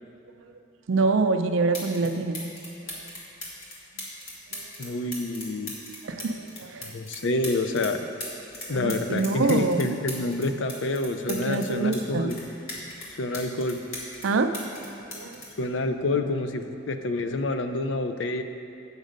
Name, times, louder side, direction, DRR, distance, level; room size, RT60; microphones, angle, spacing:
voice 1, 0.9-2.4 2.9-3.0 4.5-4.7 6.0-6.9 8.7-9.9 11.3-12.3 14.2-15.4, right 3 dB, 75° right, 8 dB, 0.5 m, -26 dB
sound 1, 1.2-1.3 1.7-2.1 2.3-7.9 8.2-12.0 12.3-14.3 14.5-16.4 17.3-17.5, left 1 dB, 90° left, 2.0 m, -38 dB
voice 2, 4.8-5.7 6.8-8.0 8.7-12.4 13.2-13.8 15.6-18.4, left 2 dB, 65° left, 7 dB, 0.5 m, -28 dB
8.2 x 6.4 x 5.1 m, 2.8 s
head